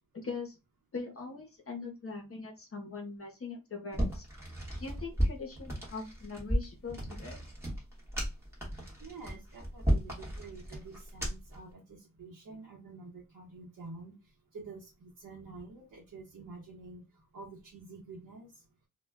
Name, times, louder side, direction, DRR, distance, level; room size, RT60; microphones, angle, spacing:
voice 1, 0.1-0.5 0.9-4.2 4.8-7.4, left 4 dB, 40° left, 1 dB, 0.7 m, -41 dB
sound 1, 3.9-11.6, equal, 5° right, 0.9 m, -34 dB
voice 2, 9.0-14.2 14.5-17.0 17.3-18.5, right 3 dB, 65° right, -2 dB, 0.8 m, -48 dB
2.1 x 2.1 x 3.4 m, 0.26 s
wide cardioid pair, 150°, 34 cm